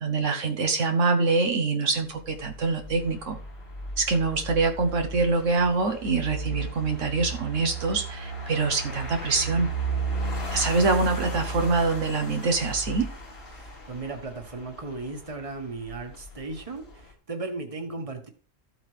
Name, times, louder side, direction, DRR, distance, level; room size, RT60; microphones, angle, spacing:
voice 1, 0.0-3.4 4.0-9.7 10.5-13.1, right 4 dB, 75° right, 4 dB, 1.5 m, -25 dB
sound 1, 2.3-17.1, right 2 dB, 55° left, 3.3 m, -35 dB
voice 2, 13.5-18.3, right 3 dB, 25° right, 4 dB, 1.5 m, -36 dB
14.0 x 7.7 x 3.4 m, 0.39 s
omnidirectional pair, 1.3 m